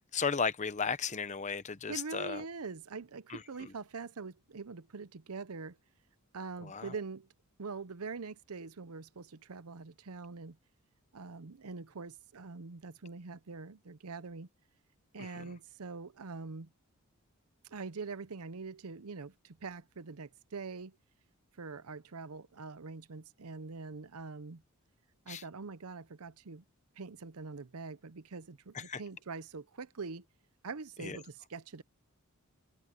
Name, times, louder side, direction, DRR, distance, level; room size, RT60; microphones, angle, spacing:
voice 1, 0.0-2.4 3.3-3.4 6.6-6.9 15.2-15.3 25.3-25.4 28.7-29.0 31.0-31.2, left 5 dB, 35° left, 0.9 m, -35 dB
voice 2, 1.9-5.8 6.3-7.3 7.6-10.6 11.1-14.5 15.1-16.7 17.7-21.0 21.6-24.6 25.3-26.6 27.0-30.2 30.6-31.8, right 4 dB, 85° right, 0.8 m, -44 dB
head